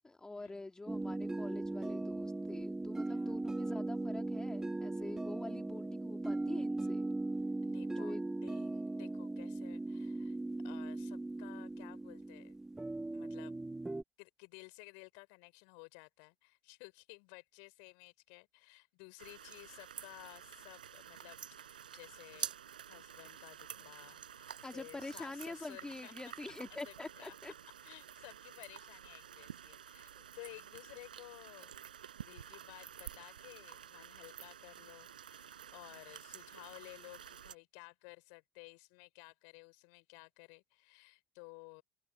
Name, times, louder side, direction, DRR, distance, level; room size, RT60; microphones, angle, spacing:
voice 1, 0.0-7.1 7.9-8.2 24.6-27.5, left 2 dB, 15° left, 2.9 m, -46 dB
sound 1, 0.9-14.0, right 2 dB, 10° right, 2.3 m, -38 dB
voice 2, 3.1-3.4 7.6-10.4 10.6-12.6 13.1-13.5 14.2-22.5 22.9-26.1 26.7-27.3 27.8-31.7 32.3-41.8, left 40 dB or more, 70° left, 5.7 m, -55 dB
sound 2, 19.2-37.6, right 9 dB, 85° right, 6.1 m, -50 dB
hypercardioid pair, 65°, 5 cm